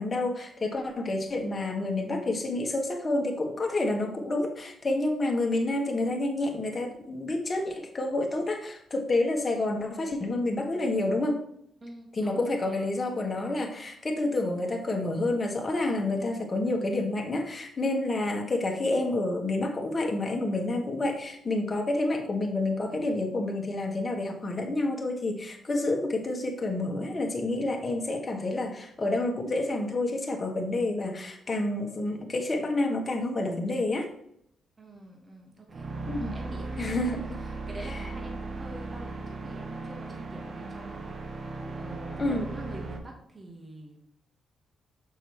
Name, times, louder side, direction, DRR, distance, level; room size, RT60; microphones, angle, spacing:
voice 1, 0.0-11.4 12.2-34.1 36.1-36.3 36.8-37.4 37.8-38.0 41.6-41.7 42.2-42.5, left 2 dB, 35° left, 2 dB, 1.6 m, -29 dB
voice 2, 11.8-12.9 34.8-37.0 37.4-44.0, right 1 dB, 35° right, 0 dB, 1.7 m, -45 dB
sound 1, 35.7-43.0, right 3 dB, 55° right, 0.9 m, -37 dB
6.6 x 5.8 x 3.2 m, 0.71 s
supercardioid pair, 50°, 0 cm